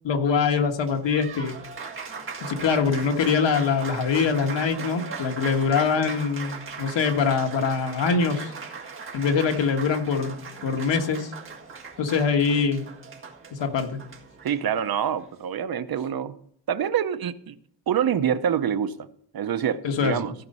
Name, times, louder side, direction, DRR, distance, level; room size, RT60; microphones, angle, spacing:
voice 1, 0.0-1.5 2.4-8.5 9.1-10.4 10.6-11.3 12.0-12.9 13.5-14.0 19.8-20.2, left 5 dB, 80° left, 1.5 m, -23 dB
Applause, 0.7-15.4, right 5 dB, 30° right, 1.8 m, -39 dB
voice 2, 14.4-16.4 16.7-17.6 17.9-19.1 19.3-20.3, right 8 dB, 55° right, 0.8 m, -26 dB
15.5 x 5.3 x 5.4 m
wide cardioid pair, 140°, 43 cm